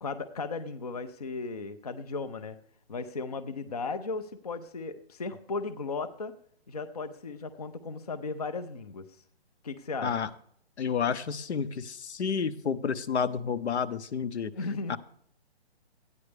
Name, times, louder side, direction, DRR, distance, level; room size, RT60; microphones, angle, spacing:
voice 1, 0.0-2.6 2.9-6.3 6.7-9.1 9.6-10.1 14.6-15.0, left 4 dB, 35° left, 11 dB, 0.5 m, -36 dB
voice 2, 10.8-14.5 14.9-15.0, left 6 dB, 75° left, 13 dB, 0.9 m, -30 dB
14.5 x 9.6 x 3.3 m, 0.64 s
hypercardioid pair, 175°, 33 cm